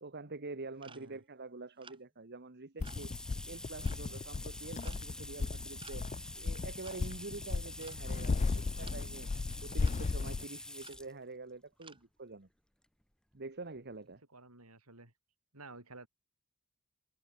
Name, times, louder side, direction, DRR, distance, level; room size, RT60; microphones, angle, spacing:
voice 1, 0.0-3.1 3.5-6.1 6.4-9.3 9.6-12.5 13.3-14.2, right 3 dB, 50° right, 1.5 m, -46 dB
sound 1, 0.8-1.3 1.8-2.0 2.8-3.1 3.8-4.1 4.8-5.1 5.8-6.2 6.8-7.0 7.8-8.1 8.8-9.1 9.8-10.0 10.8-11.0 11.8-12.0, right 5 dB, 25° right, 1.7 m, -55 dB
voice 2, 0.8-1.2 14.3-15.1 15.5-16.1, right 3 dB, 85° right, 7.9 m, -53 dB
sound 2, 2.8-10.4, left 4 dB, 30° left, 0.4 m, -36 dB
sound 3, 2.8-11.1 12.0-12.1 13.3-13.4 13.8-13.9 14.1-14.2, left 1 dB, 5° left, 1.1 m, -47 dB
head